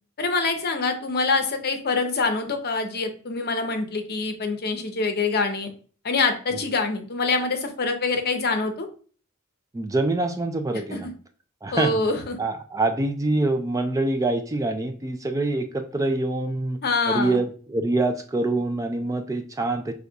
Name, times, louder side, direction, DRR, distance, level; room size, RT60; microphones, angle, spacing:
voice 1, 0.2-5.7 6.0-8.9 10.9-11.1 11.7-12.4 16.8-17.4, left 3 dB, 45° left, 6 dB, 0.7 m, -25 dB
voice 2, 9.7-11.1 11.6-12.0 12.4-16.8 17.1-19.9, right 2 dB, 15° right, 6 dB, 0.3 m, -25 dB
5.3 x 3.5 x 2.3 m, 0.42 s
head